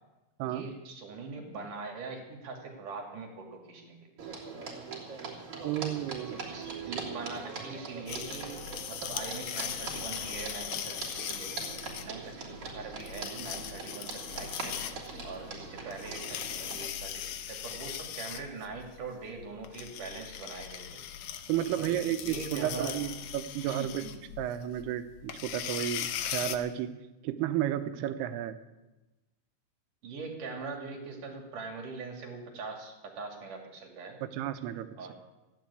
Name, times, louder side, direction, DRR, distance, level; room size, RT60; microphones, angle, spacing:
voice 1, 0.4-4.1 6.3-14.8 15.2-21.0 21.8-21.9 22.2-23.0 23.6-24.2 30.0-34.2 35.0-35.1, right 4 dB, 55° right, 1 dB, 3.7 m, -42 dB
sound 1, 4.2-16.9, right 4 dB, 40° right, 3.7 m, -42 dB
voice 2, 5.6-6.5 21.5-24.0 24.4-26.9 27.2-28.6 34.2-35.1, right 12 dB, 90° right, 10 dB, 2.9 m, -32 dB
sound 2, 8.1-26.6, left 10 dB, 75° left, 2.0 m, -40 dB
15.0 x 10.5 x 8.4 m, 1.1 s
omnidirectional pair, 4.5 m